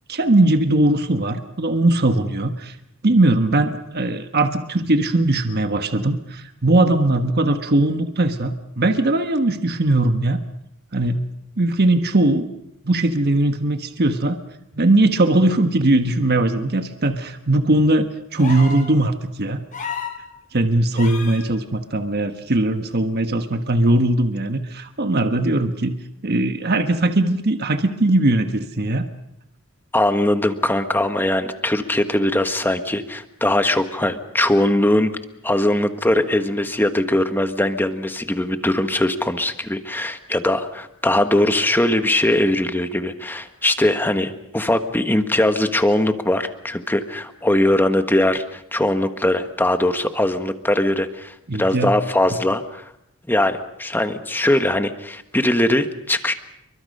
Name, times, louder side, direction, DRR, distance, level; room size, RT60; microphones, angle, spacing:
voice 1, 0.1-2.7 3.0-10.4 10.9-12.4 12.8-14.4 14.7-19.6 20.5-26.0 26.2-29.1 51.5-51.9, right 2 dB, 45° right, 8 dB, 1.3 m, -19 dB
sound 1, 18.4-18.9 19.7-20.2 21.0-21.4 22.9-23.0, left 5 dB, 35° left, 4.1 m, -31 dB
voice 2, 29.9-35.1 35.4-52.8 53.3-56.3, left 1 dB, 10° left, 8 dB, 1.3 m, -20 dB
28.0 x 23.5 x 5.5 m, 0.81 s
head